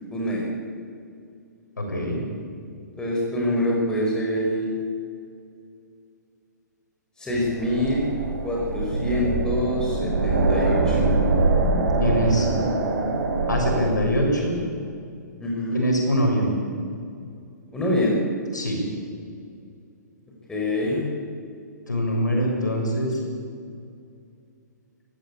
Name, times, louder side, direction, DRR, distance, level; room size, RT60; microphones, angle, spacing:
voice 1, 0.1-0.5 3.0-4.7 7.2-8.1 8.4-11.0 15.4-15.8 17.7-18.2 20.5-21.1, left 1 dB, 5° left, -4 dB, 5.4 m, -25 dB
voice 2, 1.8-2.2 12.0-12.5 13.5-14.6 15.7-16.5 18.5-18.8 21.9-23.2, equal, 75° left, 0 dB, 6.6 m, -23 dB
sound 1, 7.3-13.9, right 3 dB, 55° right, 4.6 m, -23 dB
23.5 x 15.0 x 8.6 m, 2.4 s
figure-of-eight pair, 120°, 10 cm